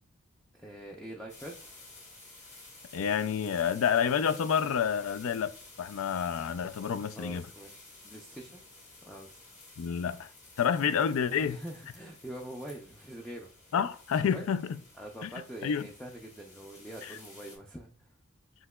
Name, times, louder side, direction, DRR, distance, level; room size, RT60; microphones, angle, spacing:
voice 1, 0.5-1.7 7.2-8.6 9.0-9.5 11.4-13.5 14.2-14.5 15.0-18.1, right 1 dB, 5° left, 0.4 m, -44 dB
sound 1, 1.3-17.6, left 2 dB, 30° left, 1.3 m, -53 dB
voice 2, 2.9-7.5 9.8-10.3 10.6-11.6 13.7-14.7 15.2-15.3 15.6-15.9 17.0-17.2, left 7 dB, 75° left, 0.3 m, -29 dB
7.8 x 2.8 x 2.3 m
head